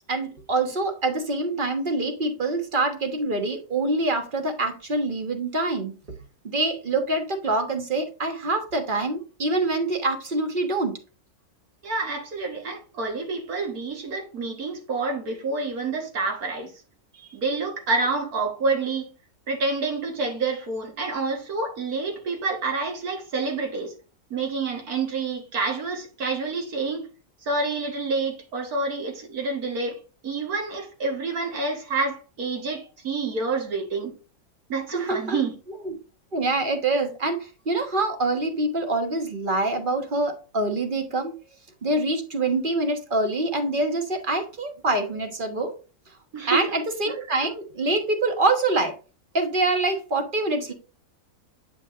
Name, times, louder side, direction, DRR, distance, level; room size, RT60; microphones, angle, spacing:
voice 1, 0.1-5.9 6.4-11.0 34.9-35.4 35.8-36.0 36.3-41.3 41.8-45.7 46.5-48.9 49.3-50.7, right 2 dB, 35° right, 1.3 m, -25 dB
voice 2, 11.8-16.7 17.1-19.1 19.5-23.9 24.3-27.1 27.4-34.2 34.7-35.5 46.3-46.6, right 3 dB, 75° right, 1.9 m, -28 dB
9.0 x 5.7 x 2.5 m
omnidirectional pair, 1.6 m